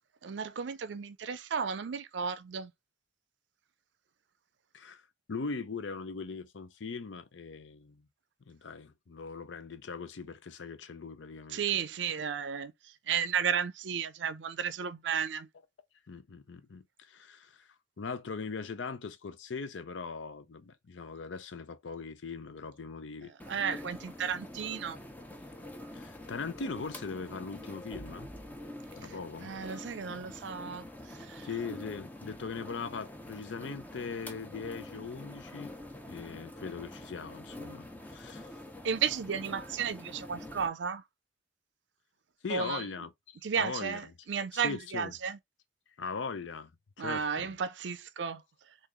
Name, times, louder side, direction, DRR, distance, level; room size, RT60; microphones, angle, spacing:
voice 1, 0.2-2.7 11.5-12.7 13.1-15.5 23.5-25.0 29.0-29.1 29.4-30.8 31.3-31.5 38.8-41.0 42.5-42.8 43.4-45.4 47.0-48.4, right 7 dB, 70° right, 0.5 m, -33 dB
voice 2, 5.3-8.1 8.5-11.8 16.1-17.7 18.0-23.3 25.9-28.3 29.0-29.5 31.4-35.7 36.1-38.5 42.4-44.0 44.5-45.1 46.0-46.7 47.0-47.6, left 4 dB, 80° left, 0.5 m, -40 dB
sound 1, 23.4-40.7, left 1 dB, 10° left, 0.5 m, -46 dB
3.8 x 2.5 x 3.0 m
head